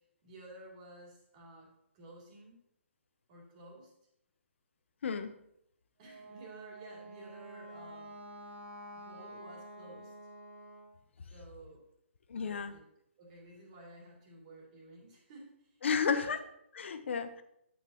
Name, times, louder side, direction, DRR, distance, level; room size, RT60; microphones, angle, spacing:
voice 1, 0.2-2.6 3.3-3.9 6.0-8.2 8.9-10.1 11.3-11.8 12.4-12.8 13.2-15.8 16.1-16.4, right 2 dB, 30° right, -2 dB, 2.9 m, -53 dB
voice 2, 5.0-5.3 12.3-12.8 15.8-16.4 16.7-17.4, left 6 dB, 65° left, 10 dB, 0.8 m, -32 dB
Wind instrument woodwind instrument, 6.0-11.0, right 1 dB, 65° right, 1.5 m, -49 dB
9.1 x 8.3 x 3.0 m, 0.76 s
hypercardioid pair, 160°, 7 cm